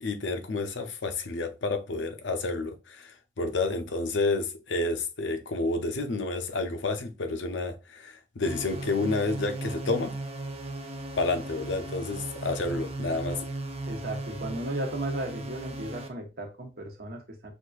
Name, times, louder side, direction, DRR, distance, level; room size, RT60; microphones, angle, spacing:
voice 1, 0.0-10.1 11.2-13.4, left 3 dB, 70° left, 0.6 m, -30 dB
sound 1, 8.4-16.1, right 2 dB, 35° right, 0.6 m, -37 dB
voice 2, 13.9-17.5, right 1 dB, 55° right, 1.0 m, -35 dB
6.2 x 2.6 x 2.4 m
head